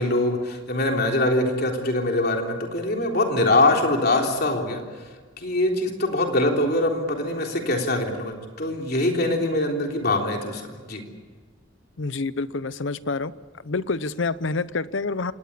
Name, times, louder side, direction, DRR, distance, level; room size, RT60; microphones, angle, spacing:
voice 1, 0.0-4.8 5.4-11.0, left 2 dB, 50° left, 2 dB, 3.7 m, -23 dB
voice 2, 12.0-13.3 13.6-15.3, left 3 dB, 65° left, 16 dB, 0.7 m, -27 dB
27.0 x 19.0 x 8.5 m, 1.5 s
head